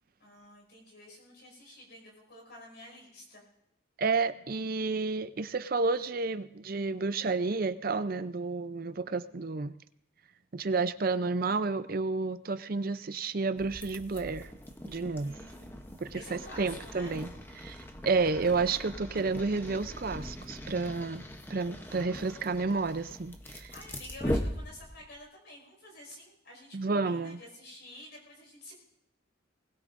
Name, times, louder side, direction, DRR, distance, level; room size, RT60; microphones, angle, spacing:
voice 1, 0.2-3.4 15.2-17.2 23.5-28.7, left 1 dB, 55° left, -1 dB, 5.3 m, -50 dB
voice 2, 4.0-9.7 10.5-14.5 14.8-15.4 16.0-17.3 17.6-23.7 26.7-27.4, right 4 dB, 45° right, 12 dB, 0.5 m, -31 dB
sound 1, 13.6-25.2, equal, 10° left, 0.8 m, -40 dB
20.5 x 20.0 x 2.6 m, 0.77 s
head